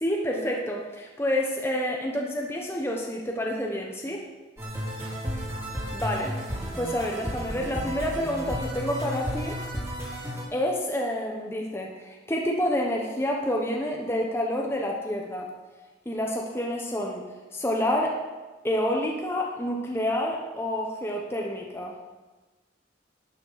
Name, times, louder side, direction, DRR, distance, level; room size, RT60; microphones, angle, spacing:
voice 1, 0.0-4.2 5.9-9.6 10.5-15.5 16.0-17.2 17.5-18.2 18.6-21.9, left 1 dB, 15° left, -1 dB, 1.1 m, -28 dB
sound 1, 4.6-10.4, equal, 15° right, 3.1 m, -33 dB
12.0 x 9.1 x 5.7 m, 1.2 s
head